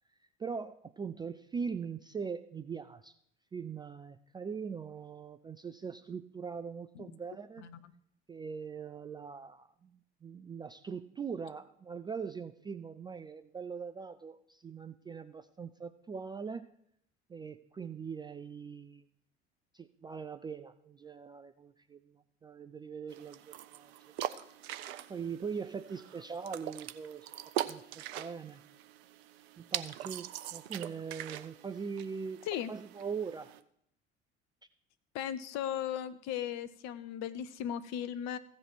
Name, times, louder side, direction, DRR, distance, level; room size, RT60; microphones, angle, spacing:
voice 1, 0.4-3.2 3.5-7.7 8.3-16.7 17.3-19.0 19.7-24.1 25.1-27.3 27.7-28.6 29.6-32.4 32.7-33.5, right 6 dB, 15° right, 10 dB, 0.3 m, -41 dB
sound 1, 23.1-33.6, right 12 dB, 65° right, 0.6 m, -42 dB
voice 2, 35.1-38.4, left 10 dB, 50° left, 12 dB, 0.8 m, -37 dB
15.5 x 5.2 x 4.6 m, 0.70 s
figure-of-eight pair, 60°, 35 cm